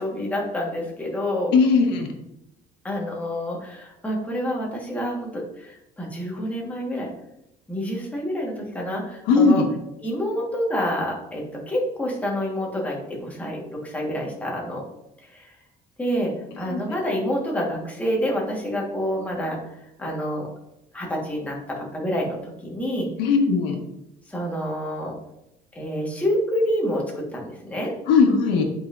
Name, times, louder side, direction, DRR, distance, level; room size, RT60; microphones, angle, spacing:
voice 1, 0.0-1.5 2.8-7.1 7.7-9.6 10.0-14.8 15.3-15.5 16.0-19.6 20.0-20.5 20.9-23.1 24.3-25.2 25.7-27.9, equal, 10° left, -2 dB, 1.4 m, -28 dB
voice 2, 1.5-2.1 9.3-9.6 16.6-16.8 23.2-23.8 28.1-28.6, left 4 dB, 85° left, 2 dB, 1.4 m, -18 dB
8.2 x 5.4 x 2.5 m, 0.85 s
cardioid pair, 165°, 17 cm